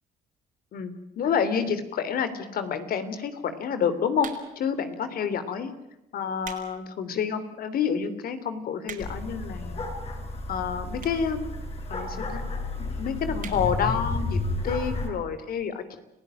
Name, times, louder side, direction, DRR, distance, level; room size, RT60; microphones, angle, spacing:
voice 1, 0.7-4.3 4.5-5.7 6.1-9.8 10.5-11.5 11.9-12.4 13.0-14.4 14.6-15.8, left 7 dB, 65° left, 11 dB, 3.4 m, -28 dB
sound 1, 4.2-4.7 5.4-5.6 6.2-6.7 7.1-7.2 7.8-7.9 8.1-8.2 8.5-9.3 10.1-10.2 11.0-11.3 11.6-11.7 11.9-12.0 12.2-12.3 12.6-12.9 13.4-13.6 14.0-14.1 14.3-14.4, right 8 dB, 60° right, 5.4 m, -42 dB
sound 2, 9.0-15.1, left 2 dB, 40° left, 6.4 m, -32 dB
30.0 x 16.5 x 9.1 m, 0.88 s
cardioid pair, 105°, 16 cm